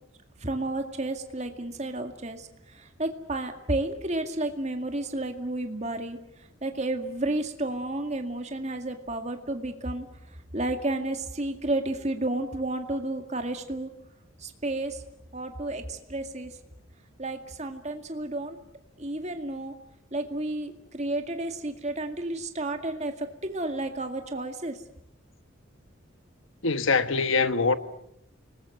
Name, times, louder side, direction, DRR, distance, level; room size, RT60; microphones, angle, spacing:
voice 1, 0.4-6.2 6.6-10.1 10.5-13.9 14.4-15.0 15.3-16.6 17.2-18.6 19.0-19.7 20.1-24.8, right 2 dB, 35° right, 2.1 m, -31 dB
voice 2, 26.6-27.8, left 4 dB, 75° left, 1.4 m, -23 dB
30.0 x 20.0 x 7.9 m
head